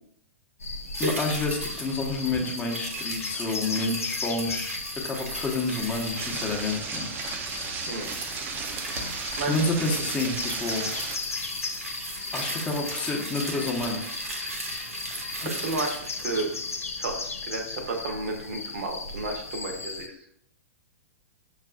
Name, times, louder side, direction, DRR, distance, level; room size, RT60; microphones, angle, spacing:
sound 1, 0.6-20.1, left 4 dB, 85° left, 0.4 m, -37 dB
sound 2, 0.9-17.4 17.8-17.9, right 1 dB, 90° right, 0.9 m, -37 dB
voice 1, 1.0-4.8 5.0-7.1 9.5-11.2 12.3-14.0 15.4-15.5, left 2 dB, 15° left, -1 dB, 0.7 m, -29 dB
sound 3, 6.2-11.2, right 5 dB, 25° right, 0.4 m, -35 dB
voice 2, 9.4-9.7 15.4-16.5 17.0-20.2, right 3 dB, 55° right, 3 dB, 0.7 m, -32 dB
5.9 x 2.4 x 2.3 m, 0.72 s
figure-of-eight pair, 110°, 8 cm